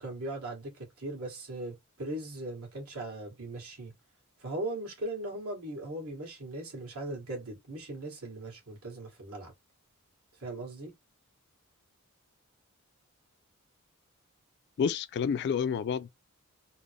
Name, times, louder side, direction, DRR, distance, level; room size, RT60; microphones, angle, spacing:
voice 1, 0.0-3.9 4.4-9.5 10.4-10.9, right 1 dB, 75° right, 1.7 m, -39 dB
voice 2, 14.8-16.1, left 6 dB, 50° left, 0.3 m, -29 dB
3.8 x 2.0 x 3.3 m
head